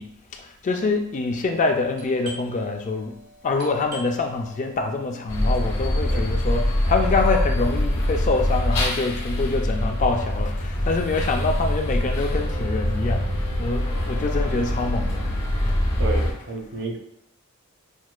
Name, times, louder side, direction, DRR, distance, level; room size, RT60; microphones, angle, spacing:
voice 1, 0.0-3.2 3.4-13.3 13.6-15.3 15.6-15.7, left 3 dB, 35° left, 4 dB, 0.3 m, -25 dB
Doorbell, 1.9-11.3 11.6-11.7 12.3-12.6 13.0-14.4, right 1 dB, 85° right, 1.0 m, -47 dB
sound 1, 5.3-16.3, left 1 dB, 70° left, 1.2 m, -24 dB
voice 2, 16.0-17.0, right 3 dB, 50° right, 2 dB, 0.6 m, -30 dB
6.0 x 2.3 x 2.3 m, 0.73 s
head